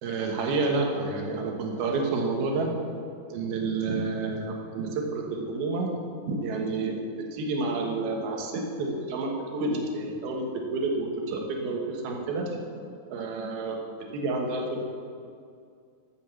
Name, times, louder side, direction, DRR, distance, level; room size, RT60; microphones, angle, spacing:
voice 1, 0.0-2.7 3.3-5.9 6.2-12.6 13.1-13.8 14.1-14.8, right 3 dB, 75° right, 1 dB, 3.2 m, -29 dB
14.5 x 7.4 x 7.0 m, 2.4 s
omnidirectional pair, 4.5 m